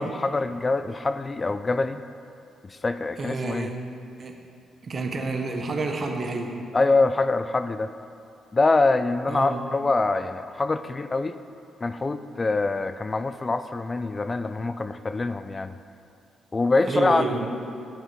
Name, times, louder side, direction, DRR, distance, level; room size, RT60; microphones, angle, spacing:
voice 1, 0.0-2.0 2.6-3.7 6.7-7.9 8.5-11.4 11.8-15.8 16.5-17.5, left 3 dB, 35° left, 11 dB, 0.3 m, -24 dB
voice 2, 3.2-3.7 4.2-4.3 4.8-6.5 9.3-9.6 16.9-17.5, right 3 dB, 50° right, 3 dB, 1.0 m, -29 dB
10.0 x 5.7 x 4.5 m, 2.6 s
supercardioid pair, 50°, 0 cm